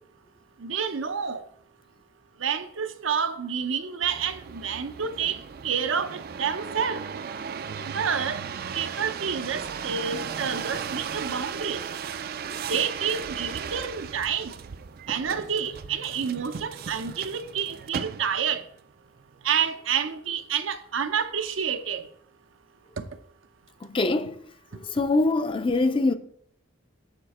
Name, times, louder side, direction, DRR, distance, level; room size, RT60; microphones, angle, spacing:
voice 1, 0.6-1.4 2.4-5.4 5.6-7.0 7.8-8.4 8.7-11.8 12.7-14.5 15.1-18.6 19.4-22.1 23.0-23.1, right 7 dB, 85° right, 0.7 m, -29 dB
sound 1, 4.0-18.6 19.2-19.7, right 6 dB, 50° right, 0.4 m, -36 dB
voice 2, 23.8-24.3 24.9-26.1, left 2 dB, 25° left, 0.4 m, -23 dB
6.8 x 6.7 x 4.2 m
head